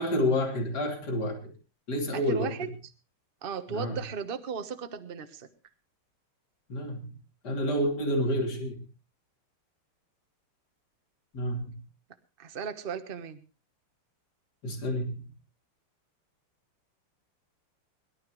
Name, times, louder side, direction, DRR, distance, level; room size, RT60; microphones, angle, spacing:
voice 1, 0.0-1.5 1.9-2.7 3.7-4.0 6.7-7.1 7.4-8.8 11.3-11.8 14.6-15.3, equal, 50° left, 2 dB, 3.6 m, -29 dB
voice 2, 2.1-2.7 3.4-5.5 12.4-13.4, right 6 dB, 35° right, 9 dB, 1.1 m, -36 dB
23.5 x 12.0 x 3.2 m, 0.31 s
omnidirectional pair, 2.4 m